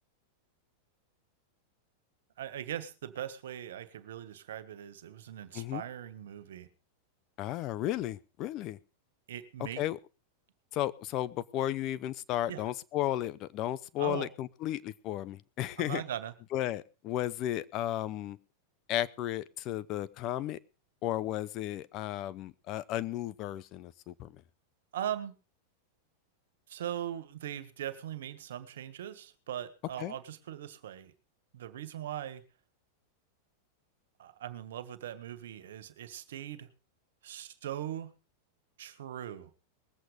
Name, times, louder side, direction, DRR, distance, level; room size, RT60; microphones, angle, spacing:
voice 1, 2.4-6.7 9.3-9.8 12.5-12.7 14.0-14.3 15.8-16.3 24.9-25.3 26.7-31.1 31.5-32.4 34.2-36.7 37.2-38.1 38.8-39.5, right 11 dB, 75° right, 14 dB, 1.7 m, -40 dB
voice 2, 7.4-8.8 9.8-10.0 10.7-16.0 16.5-18.4 18.9-20.6 21.0-24.3 30.0-30.1, left 13 dB, 45° left, 19 dB, 0.8 m, -34 dB
20.5 x 8.0 x 5.1 m, 0.34 s
hypercardioid pair, 115°, 0 cm